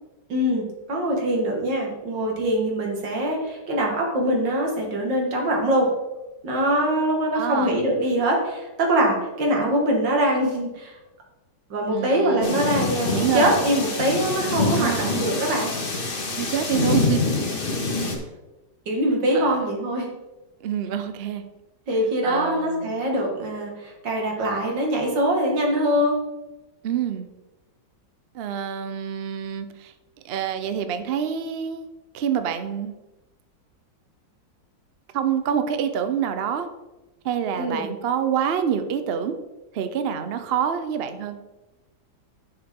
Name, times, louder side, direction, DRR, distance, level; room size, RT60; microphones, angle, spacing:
voice 1, 0.3-5.9 6.4-11.0 11.7-15.7 18.9-20.1 21.9-26.2 37.5-37.9, right 1 dB, 80° right, 0 dB, 2.5 m, -23 dB
voice 2, 7.3-7.7 11.9-13.5 14.8-15.1 16.1-17.4 19.3-19.7 20.6-21.4 22.2-22.9 26.8-27.3 28.3-29.9 30.2-31.9 32.1-33.0 35.1-36.7 37.2-39.4 39.7-41.4, right 8 dB, 65° right, 9 dB, 0.6 m, -27 dB
sound 1, 12.4-18.2, left 3 dB, 35° left, 1.3 m, -25 dB
10.5 x 5.8 x 3.7 m, 1.0 s
omnidirectional pair, 1.9 m